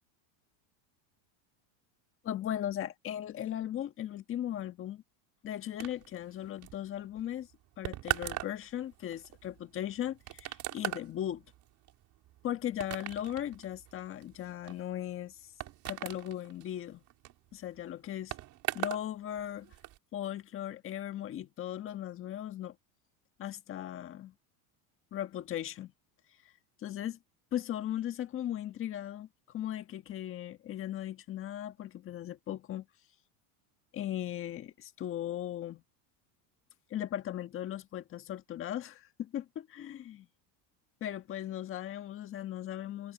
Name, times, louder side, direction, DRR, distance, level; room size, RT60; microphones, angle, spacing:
voice 1, 2.2-5.0 5.4-7.5 7.8-11.4 12.4-15.4 15.8-17.0 17.5-18.3 18.7-19.7 20.1-22.7 23.4-24.3 25.1-25.9 26.8-27.2 27.5-29.3 29.5-32.8 33.9-35.8 36.9-40.3 41.0-43.1, left 11 dB, 30° left, 1.6 m, -37 dB
sound 1, 5.8-19.1 19.3-20.0, right 15 dB, 40° right, 4.7 m, -40 dB
supercardioid pair, 150°, 43 cm